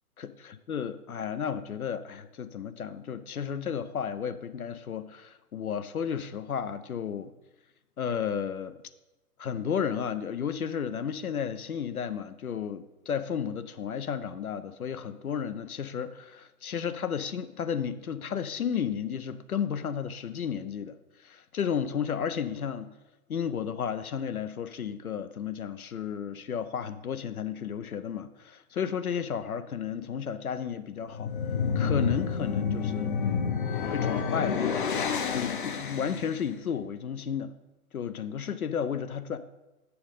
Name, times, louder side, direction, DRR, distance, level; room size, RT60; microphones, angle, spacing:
voice 1, 0.2-7.3 8.0-8.8 9.4-21.0 21.2-22.9 23.3-31.3 31.8-33.1 33.9-34.6 35.3-37.5 37.9-39.4, left 7 dB, 70° left, 12 dB, 0.6 m, -33 dB
sound 1, 31.0-36.4, left 6 dB, 35° left, 0.6 m, -29 dB
6.9 x 6.4 x 5.3 m, 1.0 s
figure-of-eight pair, 120°, 45 cm